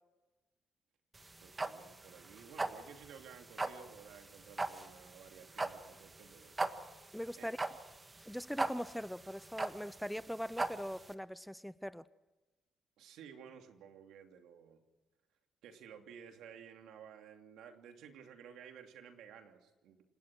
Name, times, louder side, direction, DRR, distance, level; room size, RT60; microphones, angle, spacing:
sound 1, 1.1-11.1, right 2 dB, 20° right, 1.6 m, -39 dB
voice 1, 1.4-6.5 7.4-7.5 13.0-14.8 15.6-20.0, right 7 dB, 85° right, 2.8 m, -54 dB
voice 2, 7.1-7.6 8.3-12.1, equal, ahead, 0.6 m, -41 dB
28.0 x 18.5 x 6.2 m
cardioid pair, 90°, 0 cm